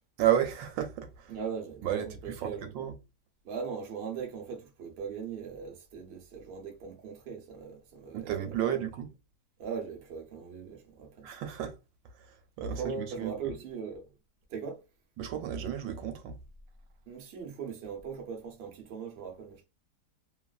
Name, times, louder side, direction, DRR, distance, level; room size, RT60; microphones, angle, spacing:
voice 1, 0.2-1.3 1.8-3.0 8.1-9.1 11.2-11.8 12.2-13.5 15.2-16.4, right 10 dB, 80° right, 1.3 m, -32 dB
voice 2, 1.3-2.7 3.4-8.9 9.6-11.3 12.6-14.1 14.5-14.8 17.0-19.7, right 6 dB, 60° right, 0.6 m, -40 dB
3.1 x 2.4 x 2.3 m
omnidirectional pair, 2.0 m